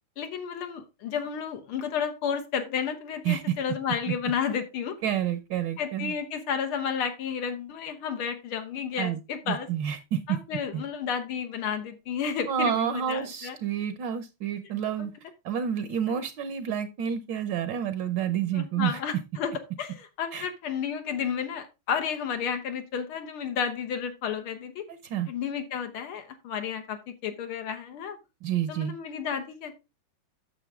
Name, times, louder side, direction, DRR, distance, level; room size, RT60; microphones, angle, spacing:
voice 1, 0.2-5.0 5.8-9.7 10.3-13.6 18.5-19.5 19.8-24.9 25.3-28.2 28.7-29.8, left 7 dB, 80° left, 6 dB, 1.9 m, -32 dB
voice 2, 5.0-6.1 9.0-9.2 9.5-10.4 10.7-10.8 12.5-15.1 15.4-19.0 20.3-20.5 24.9-25.3 28.4-28.9, right 9 dB, 65° right, 10 dB, 1.4 m, -29 dB
9.1 x 6.8 x 3.5 m, 0.26 s
omnidirectional pair, 2.4 m